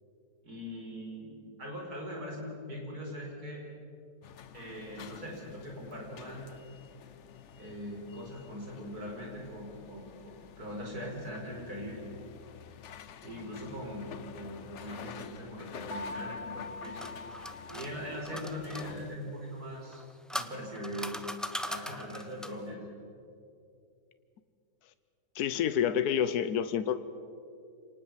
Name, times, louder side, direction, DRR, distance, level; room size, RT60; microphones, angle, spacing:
voice 1, 0.4-3.6 4.5-6.4 7.6-12.0 13.2-17.0 17.7-20.0 20.3-21.2 21.7-22.8, equal, 80° right, 0 dB, 5.6 m, -41 dB
sound 1, 4.2-19.2, left 8 dB, 55° left, 1.0 m, -49 dB
sound 2, 15.9-18.7, left 2 dB, 55° right, 3.2 m, -43 dB
sound 3, 16.6-18.9 19.8-22.7, equal, ahead, 0.7 m, -40 dB
voice 2, 25.3-27.0, left 9 dB, 80° left, 12 dB, 1.3 m, -28 dB
26.5 x 19.0 x 7.4 m, 2.5 s
omnidirectional pair, 1.6 m